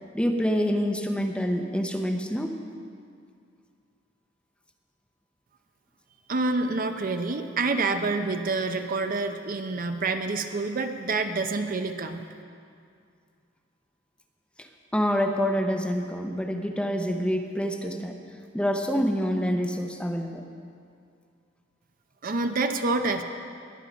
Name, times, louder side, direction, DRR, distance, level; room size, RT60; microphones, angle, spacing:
voice 1, 0.1-2.6 14.6-14.7 14.9-18.2 18.5-20.4, equal, 5° left, 4 dB, 0.7 m, -27 dB
voice 2, 6.3-12.2 22.2-23.2, right 3 dB, 45° right, 7 dB, 0.6 m, -27 dB
20.0 x 7.1 x 5.2 m, 2.3 s
head